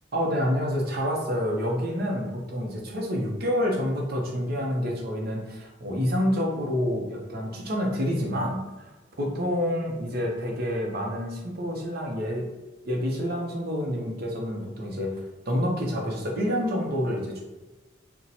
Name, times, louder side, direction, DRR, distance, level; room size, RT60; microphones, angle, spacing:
voice 1, 0.1-8.9 9.2-12.4 12.8-15.2 15.5-17.4, equal, 55° right, 0 dB, 0.7 m, -28 dB
2.8 x 2.1 x 4.0 m, 1.2 s
head